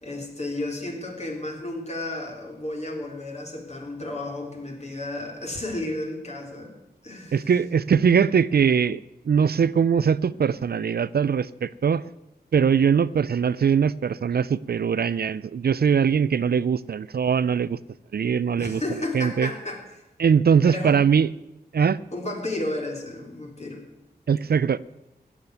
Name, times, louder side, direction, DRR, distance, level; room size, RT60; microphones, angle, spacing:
voice 1, 0.0-6.7 7.0-7.5 18.6-19.8 20.7-21.0 22.1-23.8, left 2 dB, 40° left, 1 dB, 3.7 m, -32 dB
voice 2, 7.3-9.0 9.3-12.0 12.5-17.8 18.1-18.8 19.1-19.5 20.2-21.3 21.7-22.0 24.3-24.8, right 7 dB, 65° right, 18 dB, 0.4 m, -21 dB
16.5 x 7.4 x 9.4 m, 0.94 s
wide cardioid pair, 80°, 17 cm